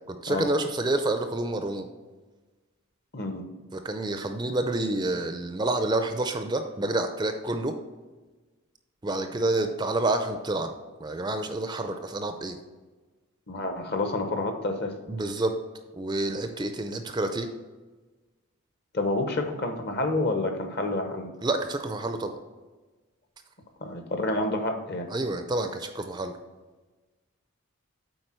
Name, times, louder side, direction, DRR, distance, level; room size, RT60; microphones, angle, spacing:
voice 1, 0.1-1.9 3.7-7.8 9.0-10.7 11.0-12.6 15.1-15.5 15.9-17.5 21.4-22.4 25.1-26.3, right 2 dB, 20° right, 7 dB, 0.4 m, -28 dB
voice 2, 3.1-3.4 13.5-14.9 18.9-21.3 23.8-25.1, left 2 dB, 50° left, 5 dB, 0.9 m, -28 dB
7.8 x 4.5 x 4.4 m, 1.3 s
head